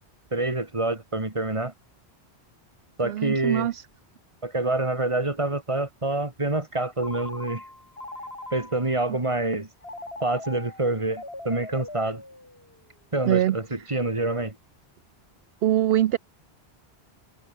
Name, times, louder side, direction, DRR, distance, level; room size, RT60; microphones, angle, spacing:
voice 1, 0.3-1.7 3.0-3.7 4.4-7.6 8.5-9.7 10.2-12.2 13.1-14.6, right 2 dB, 30° right, 2.5 m, -27 dB
voice 2, 3.0-3.8 13.3-13.6 15.6-16.2, right 12 dB, 70° right, 0.8 m, -23 dB
Telephone, 7.0-9.0 9.8-12.9, left 2 dB, 65° left, 5.6 m, -41 dB
omnidirectional pair, 1.1 m